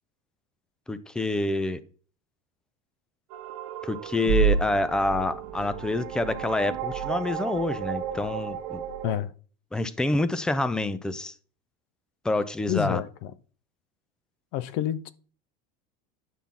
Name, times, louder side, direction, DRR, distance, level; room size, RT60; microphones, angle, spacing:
voice 1, 0.9-1.8 3.8-8.8 9.7-11.3 12.2-13.0, left 2 dB, 5° left, 0.4 m, -27 dB
sound 1, 3.3-9.2, right 8 dB, 65° right, 1.3 m, -30 dB
voice 2, 12.7-13.3 14.5-15.1, left 12 dB, 55° left, 0.6 m, -28 dB
10.5 x 5.8 x 3.6 m
cardioid pair, 165°, 19 cm